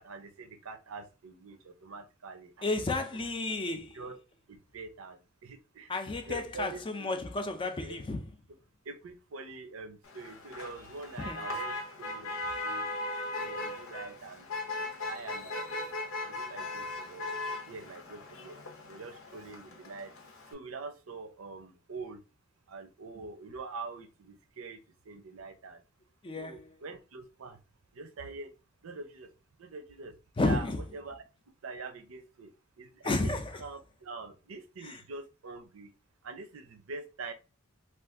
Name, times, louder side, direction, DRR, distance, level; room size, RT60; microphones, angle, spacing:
voice 1, 0.0-2.7 3.1-3.3 3.7-4.2 4.5-6.0 6.2-7.2 7.8-8.0 8.8-12.9 13.4-14.5 15.0-15.9 16.2-17.4 17.6-18.6 18.9-20.1 20.5-22.2 22.7-24.8 25.1-25.8 26.3-27.6 27.9-28.5 28.8-29.3 29.6-30.1 30.4-31.2 31.6-32.5 32.8-35.9 36.2-37.3, right 3 dB, 80° right, 0.6 m, -44 dB
voice 2, 2.6-4.0 5.9-8.2 11.2-11.4 26.2-26.6 30.4-30.8 33.0-33.4 34.8-35.0, left 2 dB, 25° left, 0.4 m, -32 dB
Motor vehicle (road), 10.0-20.5, left 2 dB, 90° left, 0.8 m, -38 dB
2.5 x 2.4 x 3.5 m
head